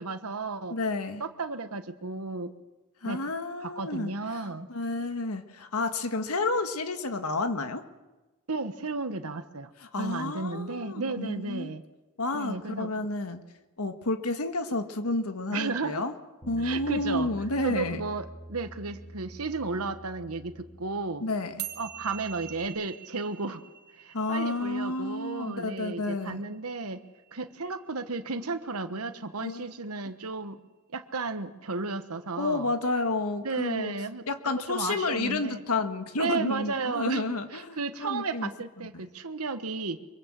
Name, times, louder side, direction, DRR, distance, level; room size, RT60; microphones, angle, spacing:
voice 1, 0.0-0.8 1.2-2.5 3.0-3.2 3.6-4.7 8.5-9.7 10.0-11.8 12.3-12.9 15.5-16.0 16.6-17.3 17.6-21.2 21.8-23.6 23.9-27.0 27.3-30.6 30.9-32.7 33.4-34.2 34.7-35.6 36.2-40.0, right 3 dB, 80° right, 9 dB, 1.3 m, -33 dB
voice 2, 0.7-1.2 3.0-4.4 4.7-7.8 9.8-11.7 12.2-13.4 13.8-16.1 16.5-18.0 21.2-21.6 24.1-26.4 29.4-29.7 32.4-33.9 34.3-38.5 38.9-39.1, left 2 dB, 85° left, 8 dB, 1.7 m, -30 dB
Bass guitar, 16.4-21.2 21.5-22.7, right 1 dB, 10° left, 5.4 m, -46 dB
sound 1, 21.6-28.2, right 11 dB, 50° right, 1.4 m, -45 dB
24.5 x 23.5 x 7.6 m, 1.1 s
head